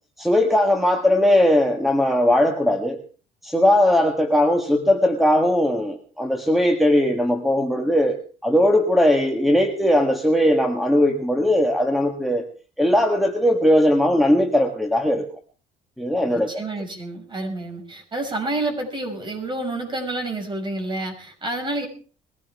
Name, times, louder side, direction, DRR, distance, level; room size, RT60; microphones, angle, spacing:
voice 1, 0.2-3.0 3.4-12.5 12.8-15.3 16.0-16.5, left 1 dB, ahead, 4 dB, 1.6 m, -19 dB
voice 2, 16.3-21.9, right 2 dB, 30° right, 3 dB, 5.9 m, -29 dB
21.0 x 15.0 x 3.6 m, 0.38 s
cardioid pair, 110°, 17 cm